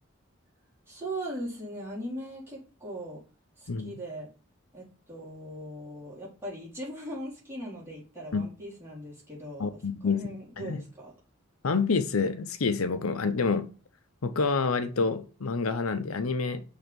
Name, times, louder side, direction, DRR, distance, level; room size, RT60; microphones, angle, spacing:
voice 1, 0.9-3.2 3.6-4.3 4.7-11.1, right 1 dB, 10° right, -7 dB, 3.7 m, -39 dB
voice 2, 9.6-10.2 10.6-10.8 11.6-13.7 14.2-16.6, left 4 dB, 85° left, 10 dB, 0.7 m, -28 dB
6.1 x 3.8 x 5.3 m, 0.35 s
head